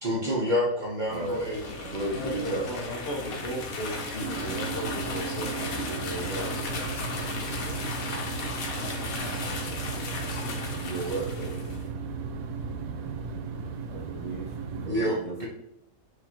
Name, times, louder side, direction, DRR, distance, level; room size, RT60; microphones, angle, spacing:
voice 1, 0.0-1.7 14.7-15.5, equal, 40° right, -5 dB, 0.9 m, -28 dB
sound 1, 1.0-11.8, left 3 dB, 85° left, 1.3 m, -35 dB
voice 2, 1.1-1.5 1.9-2.7 10.5-11.5 13.9-14.4 14.9-15.4, right 3 dB, 60° right, -2 dB, 0.4 m, -34 dB
voice 3, 2.2-6.6, equal, 50° left, -2 dB, 1.0 m, -36 dB
sound 2, 4.2-14.9, right 5 dB, 85° right, 1.0 m, -35 dB
4.9 x 2.6 x 4.2 m, 0.81 s
omnidirectional pair, 1.5 m